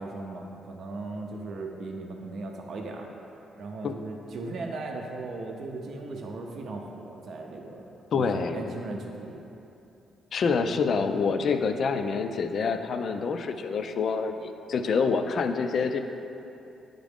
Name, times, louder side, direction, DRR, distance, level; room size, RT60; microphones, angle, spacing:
voice 1, 0.0-3.1 3.6-7.9 8.1-8.2 8.5-9.4, right 2 dB, 55° right, 1 dB, 0.6 m, -37 dB
voice 2, 8.1-8.7 10.3-16.0, left 5 dB, 50° left, 8 dB, 0.4 m, -27 dB
9.7 x 3.7 x 3.5 m, 2.8 s
cardioid pair, 135°, 0 cm